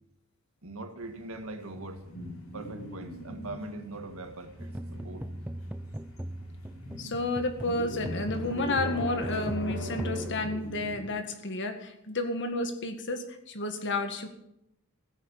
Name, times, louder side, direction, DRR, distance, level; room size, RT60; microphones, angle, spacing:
voice 1, 0.6-2.1 2.5-5.3, right 2 dB, 70° right, 6 dB, 1.9 m, -41 dB
Wind in doorway, 1.0-11.1, equal, 85° left, 6.5 m, -42 dB
sound 1, 4.6-11.2, right 1 dB, 10° right, 0.5 m, -39 dB
voice 2, 7.0-14.3, left 2 dB, 55° left, 7 dB, 1.9 m, -31 dB
16.0 x 9.4 x 7.3 m, 0.81 s
head